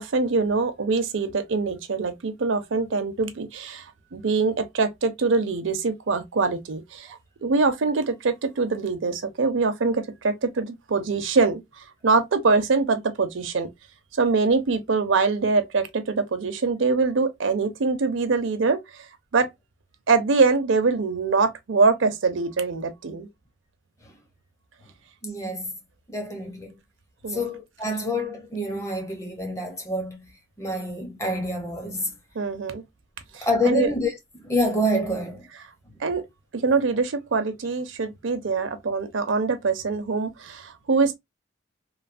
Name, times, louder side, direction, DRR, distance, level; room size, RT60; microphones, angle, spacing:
voice 1, 0.0-13.7 14.2-19.1 19.3-19.5 20.1-23.3 27.2-27.4 32.3-32.8 33.3-33.9 36.0-36.3 36.5-41.2, right 4 dB, 80° right, 0.5 m, -24 dB
voice 2, 25.2-25.7 26.1-26.7 27.3-30.3 30.6-32.2 33.4-35.5, left 1 dB, 15° left, 0.6 m, -27 dB
3.1 x 2.0 x 2.4 m
head